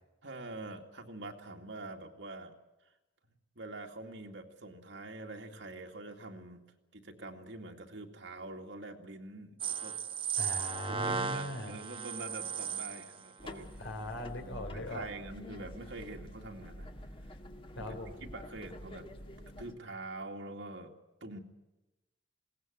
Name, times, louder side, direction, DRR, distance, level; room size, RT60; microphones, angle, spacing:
voice 1, 0.2-2.5 3.6-6.6 6.9-10.0 10.9-13.7 14.4-16.9 17.8-19.1 19.6-20.9 21.2-21.4, right 2 dB, 65° right, 3 dB, 2.4 m, -45 dB
sound 1, 9.6-13.2, right 6 dB, 25° right, 1.3 m, -36 dB
voice 2, 10.4-11.8 13.8-15.1 17.8-18.2, left 1 dB, 75° left, 5 dB, 3.7 m, -40 dB
sound 2, 13.4-19.7, left 1 dB, 25° left, 1.8 m, -47 dB
21.0 x 18.5 x 9.3 m, 1.0 s
head